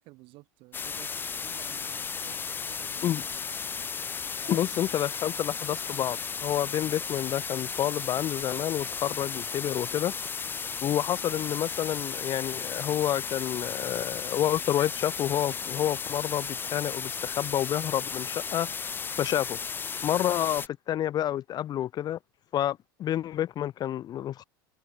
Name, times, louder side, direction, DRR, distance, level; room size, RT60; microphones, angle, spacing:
voice 1, 0.0-3.5 4.4-4.9, right 22 dB, 50° right, 7.5 m, -53 dB
sound 1, 0.7-20.7, left 6 dB, 15° left, 0.6 m, -35 dB
voice 2, 4.5-10.1 10.8-18.7 19.2-19.6 20.0-22.2 22.5-24.4, left 11 dB, 35° left, 1.3 m, -29 dB
figure-of-eight pair, 80°, 12 cm